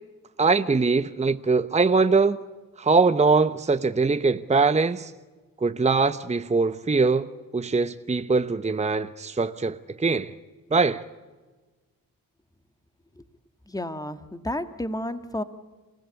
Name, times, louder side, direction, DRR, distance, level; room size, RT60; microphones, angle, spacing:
voice 1, 0.4-2.4 2.8-5.1 5.6-7.3 7.5-10.3 10.7-11.0, right 4 dB, 20° right, 0.9 m, -22 dB
voice 2, 13.7-15.4, left 1 dB, 10° left, 1.7 m, -31 dB
28.5 x 16.0 x 8.3 m
cardioid pair, 65°, 35 cm